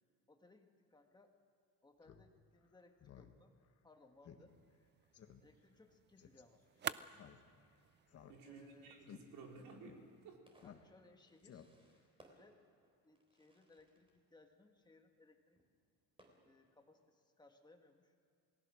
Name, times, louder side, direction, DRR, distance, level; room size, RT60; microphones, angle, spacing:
voice 1, 0.3-1.3 1.8-3.5 3.8-4.6 5.4-7.3 8.4-9.0 10.6-11.7 12.3-12.6 13.0-15.6 16.4-18.1, left 2 dB, 10° left, 4 dB, 1.8 m, -66 dB
Fireworks, 1.9-16.9, right 1 dB, 15° right, 3.8 m, -73 dB
Speech synthesizer, 2.0-2.2 2.6-2.7 3.0-3.3 3.7-3.8 4.2-4.4 4.7-4.8 5.1-5.4 6.2-6.4 7.1-7.7 8.1-8.7 9.0-9.2 9.8-10.0 10.6-11.1 11.4-12.0, left 9 dB, 45° left, 1.6 m, -57 dB
sound 1, 4.5-10.4, right 9 dB, 30° right, 0.5 m, -51 dB
voice 2, 8.3-10.4, right 4 dB, 70° right, 0 dB, 4.5 m, -55 dB
28.0 x 19.0 x 6.4 m, 2.4 s
cardioid pair, 140°, 35 cm